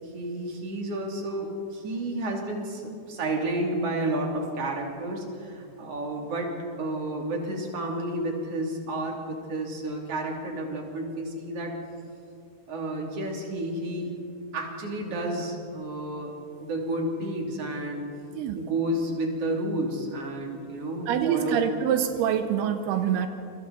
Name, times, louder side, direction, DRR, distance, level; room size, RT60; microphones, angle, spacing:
voice 1, 0.0-6.5 6.8-11.7 12.7-14.1 14.5-18.0 18.5-21.6, right 1 dB, 40° right, 0 dB, 3.7 m, -31 dB
voice 2, 21.1-23.3, right 9 dB, 85° right, 8 dB, 2.8 m, -25 dB
28.5 x 24.0 x 4.2 m, 2.5 s
omnidirectional pair, 4.5 m